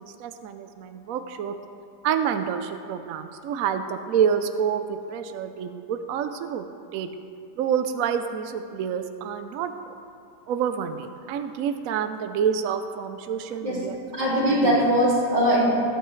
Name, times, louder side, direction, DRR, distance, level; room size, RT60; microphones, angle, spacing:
voice 1, 0.0-1.6 2.0-6.7 6.9-7.1 7.6-9.7 10.5-14.9, right 8 dB, 65° right, 8 dB, 0.9 m, -28 dB
voice 2, 14.2-15.7, equal, 85° right, -7 dB, 3.4 m, -21 dB
21.0 x 8.0 x 3.2 m, 2.6 s
omnidirectional pair, 1.9 m